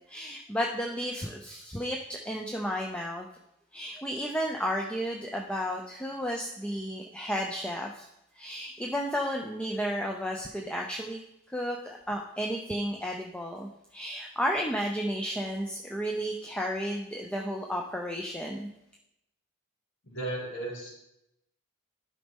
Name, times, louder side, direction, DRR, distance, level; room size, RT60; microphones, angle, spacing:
voice 1, 0.1-3.3 3.7-8.1 8.3-11.2 11.5-18.7, equal, 5° left, 0 dB, 0.5 m, -33 dB
voice 2, 20.0-20.9, right 2 dB, 65° left, -2 dB, 2.2 m, -35 dB
11.5 x 5.2 x 3.6 m, 0.84 s
head